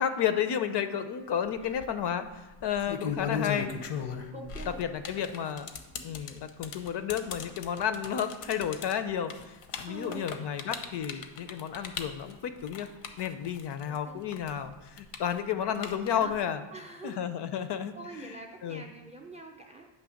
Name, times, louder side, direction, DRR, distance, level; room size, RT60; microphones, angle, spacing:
voice 1, 0.0-3.7 4.8-5.7 6.0-12.9 13.2-16.6 17.0-17.9 18.2-18.8, left 8 dB, 55° left, 10 dB, 0.5 m, -32 dB
sound 1, 1.5-1.9 2.6-14.0 14.3-16.4, left 7 dB, 80° left, 0.8 m, -37 dB
voice 2, 4.3-4.8 6.2-6.4 9.9-10.2 13.8-14.2 16.0-16.3 16.7-17.2 17.9-19.9, right 2 dB, 15° right, 3 dB, 0.3 m, -45 dB
8.9 x 3.1 x 6.3 m, 1.2 s
wide cardioid pair, 175°, 50 cm